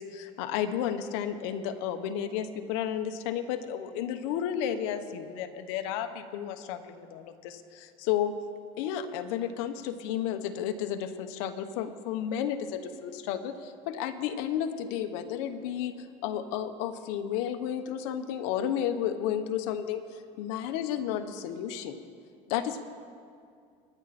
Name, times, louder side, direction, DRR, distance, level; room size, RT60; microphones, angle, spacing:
voice 1, 0.0-8.3 8.8-22.0 22.5-22.8, left 9 dB, 80° left, 9 dB, 1.2 m, -32 dB
25.5 x 11.0 x 4.3 m, 2.3 s
supercardioid pair, 120°, 16 cm